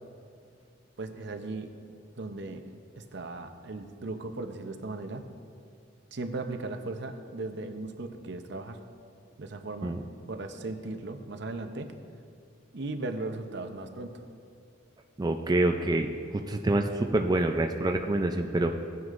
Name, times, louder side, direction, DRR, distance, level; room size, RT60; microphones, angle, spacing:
voice 1, 1.0-1.7 2.2-2.6 3.0-5.2 6.1-8.8 9.4-10.0 10.3-11.9 12.7-14.2, right 2 dB, 65° right, 7 dB, 0.7 m, -37 dB
voice 2, 15.2-18.7, right 2 dB, 20° right, 4 dB, 0.4 m, -27 dB
17.0 x 9.4 x 2.5 m, 2.3 s
head